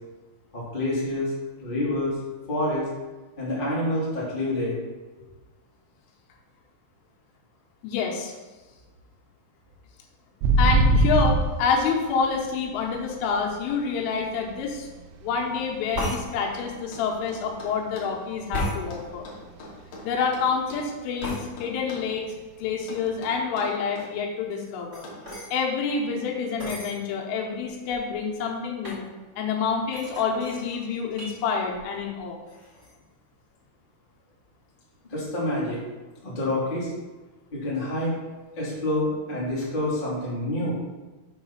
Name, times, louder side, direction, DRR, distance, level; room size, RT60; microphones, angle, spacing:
voice 1, 0.5-1.3 1.6-2.1 2.5-2.9 3.4-4.8 35.1-35.8 36.2-36.9 37.5-38.1 38.5-40.7, left 1 dB, 35° left, -8 dB, 0.7 m, -27 dB
voice 2, 7.8-8.3 10.6-14.9 15.2-19.3 20.0-22.3 22.6-25.1 25.5-29.1 29.4-32.4, left 5 dB, 85° left, 0 dB, 3.6 m, -27 dB
sound 1, 10.4-13.7 14.1-16.3 16.6-17.0 17.3-19.2 19.5-19.6 19.9-20.3 20.7-20.8 23.0-23.1, right 2 dB, 85° right, 3.2 m, -23 dB
sound 2, 15.9-16.2 18.5-18.8 21.2-21.4 24.5-25.5 26.6-26.9 27.6-27.7 27.9-28.3 28.8-29.0 29.9-31.4 31.7-32.2 32.5-32.9, left 1 dB, 25° right, 1.3 m, -33 dB
sound 3, 16.6-18.2 18.9-20.9 21.2-22.1 22.9-24.1 25.0-25.3, left 2 dB, 70° left, 2.0 m, -43 dB
7.8 x 3.9 x 5.7 m, 1.2 s
omnidirectional pair, 5.5 m